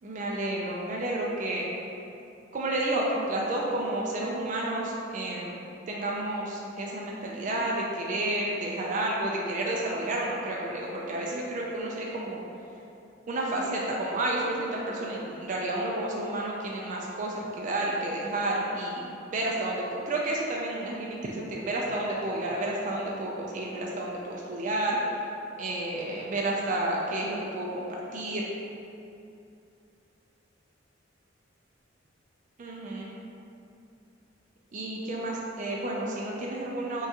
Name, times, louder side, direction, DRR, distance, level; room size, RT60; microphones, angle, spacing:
voice 1, 0.0-1.7 2.5-12.4 13.3-25.0 25.6-27.8 28.1-28.5 32.6-33.1 34.7-37.1, right 1 dB, 40° right, -3 dB, 0.4 m, -31 dB
5.4 x 2.4 x 2.8 m, 2.7 s
head